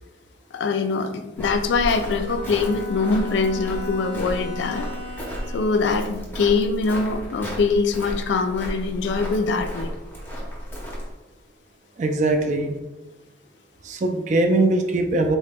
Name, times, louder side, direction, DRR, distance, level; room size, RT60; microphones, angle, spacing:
voice 1, 0.5-4.9 5.5-9.9, left 4 dB, 70° left, 7 dB, 0.3 m, -23 dB
Walk footsteps, 1.4-11.1, equal, 10° left, 0.6 m, -33 dB
Bowed string instrument, 2.3-5.9, left 2 dB, 80° right, 0.7 m, -37 dB
voice 2, 12.0-12.8 13.8-15.4, right 2 dB, 40° right, 5 dB, 0.3 m, -21 dB
3.7 x 2.1 x 3.3 m, 1.1 s
head